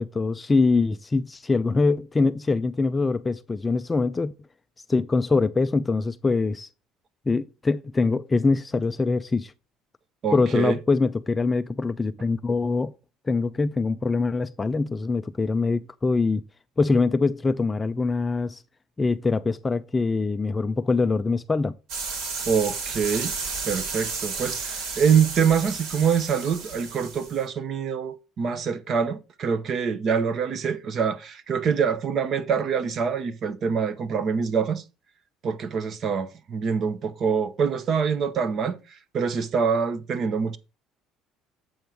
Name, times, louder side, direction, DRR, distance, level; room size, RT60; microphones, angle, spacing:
voice 1, 0.0-4.3 4.9-6.7 7.3-9.5 10.3-12.9 13.3-16.4 16.8-18.6 19.0-21.7, left 3 dB, 15° left, 0.3 m, -23 dB
voice 2, 10.2-10.8 22.5-23.3 23.6-34.8 35.4-38.8 39.1-40.6, right 6 dB, 35° right, 0.7 m, -25 dB
sound 1, 21.9-27.4, right 4 dB, 60° right, 2.4 m, -32 dB
7.8 x 5.3 x 4.6 m
cardioid pair, 170°, 0 cm